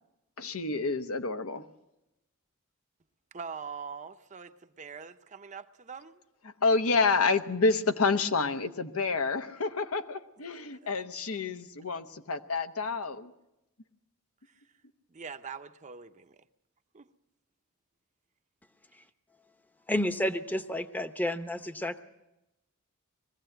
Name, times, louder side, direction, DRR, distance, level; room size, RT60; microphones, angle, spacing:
voice 1, 0.4-1.7 6.6-13.3, left 4 dB, 85° left, 1.0 m, -28 dB
voice 2, 3.3-6.2 10.8-10.9 14.5-14.6 15.1-16.4 16.9-17.1, right 5 dB, 35° right, 0.7 m, -43 dB
voice 3, 19.9-22.0, left 1 dB, 10° left, 0.8 m, -30 dB
21.5 x 15.5 x 7.8 m
head